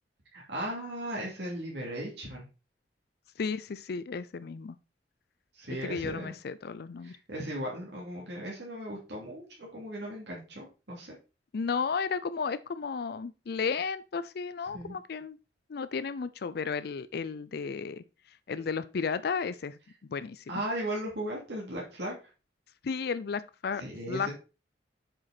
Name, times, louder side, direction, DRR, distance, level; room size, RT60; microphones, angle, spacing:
voice 1, 0.3-2.4 5.5-6.3 7.0-11.1 14.7-14.9 20.5-22.2 23.8-24.3, right 1 dB, 70° right, 2.8 m, -37 dB
voice 2, 3.4-4.8 5.8-7.2 11.5-15.4 15.7-18.0 18.5-19.8 20.1-20.6 22.8-23.8 24.1-24.3, left 5 dB, 60° left, 0.4 m, -33 dB
7.5 x 5.0 x 4.1 m
head